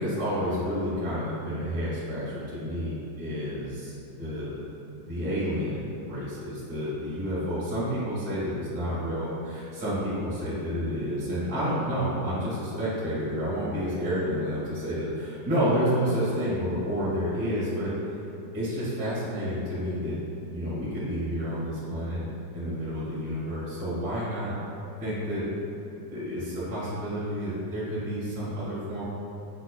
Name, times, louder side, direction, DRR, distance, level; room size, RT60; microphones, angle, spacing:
voice 1, 0.0-4.7 5.1-17.9 18.5-20.2 20.5-22.3 22.5-24.5 25.0-25.4 26.1-29.0, equal, 40° right, -10 dB, 0.8 m, -30 dB
5.5 x 2.1 x 2.2 m, 2.7 s
omnidirectional pair, 2.0 m